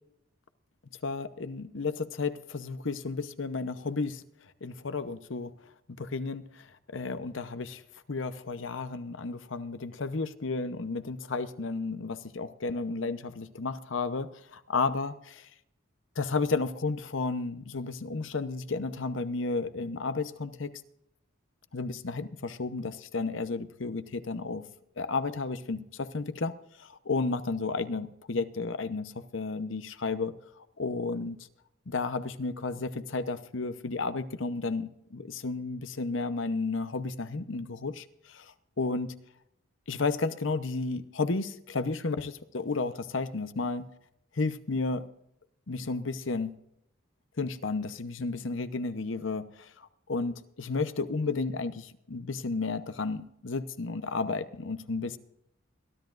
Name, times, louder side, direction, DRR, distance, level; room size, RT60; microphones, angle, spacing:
voice 1, 1.0-4.2 4.6-5.5 6.0-6.5 6.9-7.8 8.1-15.4 16.2-20.7 21.7-24.6 25.0-26.5 26.8-30.3 30.8-31.4 31.9-38.0 38.3-38.4 38.8-39.1 39.9-43.9 44.4-45.0 45.7-46.5 47.4-49.7 50.1-55.2, left 3 dB, 70° left, 11 dB, 0.8 m, -32 dB
22.5 x 13.0 x 2.5 m, 0.77 s
head